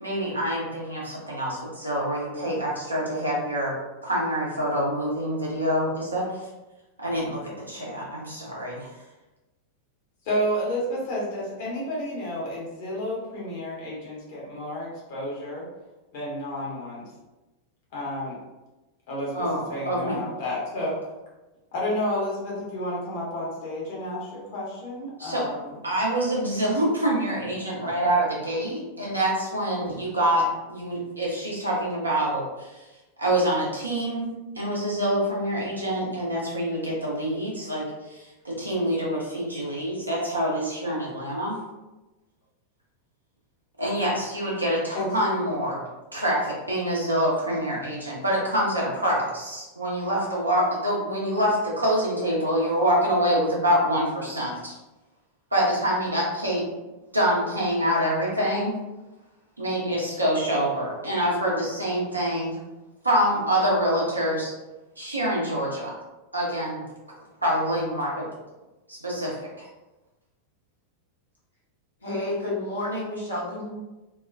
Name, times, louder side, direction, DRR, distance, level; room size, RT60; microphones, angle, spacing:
voice 1, 0.0-3.8 4.0-6.5 7.0-9.0 19.3-20.2 25.2-25.5 25.8-32.9 33.2-34.3 34.5-41.6 43.8-45.8 46.1-54.7 55.5-56.6 57.1-58.8 59.6-62.5 63.0-64.5 65.0-65.9 66.3-66.8 67.4-68.2 68.9-69.7, equal, 85° right, -5 dB, 0.8 m, -26 dB
voice 2, 10.2-15.7 16.1-17.1 17.9-18.4 19.1-21.0 21.7-25.7 44.9-45.1, equal, 50° left, -5 dB, 1.0 m, -31 dB
voice 3, 72.0-73.7, left 1 dB, 80° left, -7 dB, 1.0 m, -30 dB
2.8 x 2.2 x 2.5 m, 1.1 s
figure-of-eight pair, 90°, 0 cm